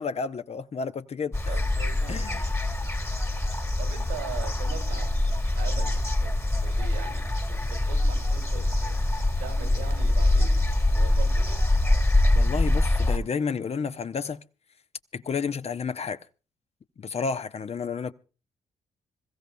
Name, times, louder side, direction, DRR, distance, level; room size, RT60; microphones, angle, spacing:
voice 1, 0.0-1.4 2.1-2.4 12.4-14.4 15.1-16.2 17.0-18.1, left 5 dB, 45° left, 0.8 m, -31 dB
sound 1, 1.3-13.2, left 1 dB, 15° left, 1.7 m, -24 dB
voice 2, 1.5-2.5 3.8-6.3 6.6-9.0 9.4-11.6, right 6 dB, 90° right, 2.5 m, -41 dB
26.5 x 15.0 x 2.3 m
hypercardioid pair, 40°, 15 cm